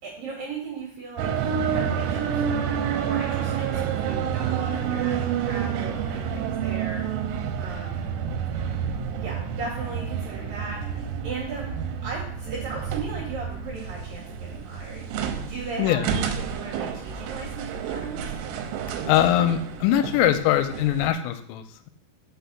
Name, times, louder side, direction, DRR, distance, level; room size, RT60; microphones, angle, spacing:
voice 1, 0.0-7.1 7.6-8.1 9.1-11.7 12.0-15.1 15.4-18.2, right 4 dB, 55° right, -6 dB, 3.3 m, -37 dB
sound 1, 1.2-21.1, right 7 dB, 90° right, 3.7 m, -29 dB
voice 2, 19.0-21.9, left 11 dB, 85° left, 9 dB, 3.2 m, -22 dB
6.2 x 6.1 x 6.9 m, 0.62 s
omnidirectional pair, 6.0 m